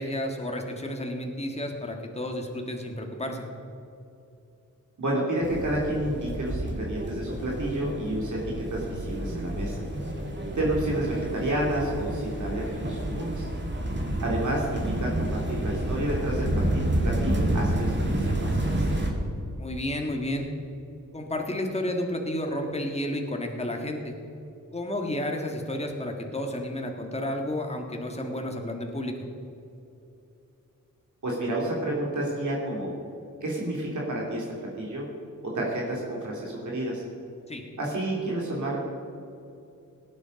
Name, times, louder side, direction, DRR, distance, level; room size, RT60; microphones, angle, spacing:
voice 1, 0.0-3.5 19.6-20.5 21.1-24.2 24.7-29.1 37.5-37.6, left 1 dB, 20° left, 2 dB, 1.7 m, -31 dB
voice 2, 5.0-9.8 10.5-13.5 14.2-16.5 16.7-19.0 31.2-32.9 33.4-34.4 34.8-35.0 35.4-37.0 37.8-38.8, right 1 dB, 60° right, -3 dB, 2.8 m, -30 dB
sound 1, 5.4-19.1, right 1 dB, 35° right, 2.4 m, -29 dB
18.0 x 8.5 x 5.2 m, 2.7 s
wide cardioid pair, 85°, 33 cm